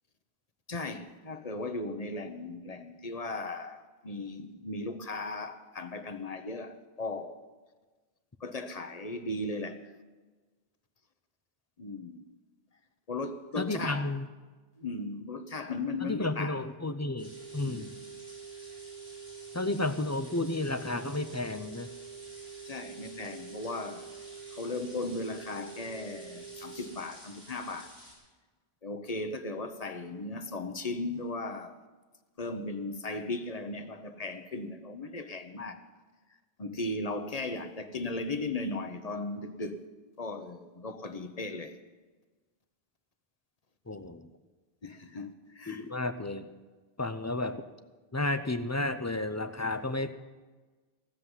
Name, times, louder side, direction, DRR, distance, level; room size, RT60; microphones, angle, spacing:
voice 1, 0.7-7.4 8.4-9.9 11.8-12.2 13.1-14.1 14.8-16.6 17.6-17.9 22.7-24.1 24.5-28.0 28.8-31.8 32.4-35.8 36.6-39.8 40.2-41.8 44.8-45.8, left 2 dB, 40° left, 1.0 m, -37 dB
voice 2, 13.6-14.3 16.0-17.9 19.5-21.9 43.9-44.3 45.7-46.5 47.0-47.6 48.1-50.1, left 2 dB, 20° left, 0.5 m, -32 dB
sound 1, 17.0-27.0, right 7 dB, 35° right, 0.8 m, -46 dB
sound 2, 17.2-28.1, equal, 85° right, 6.2 m, -52 dB
16.5 x 7.5 x 9.7 m
omnidirectional pair, 1.0 m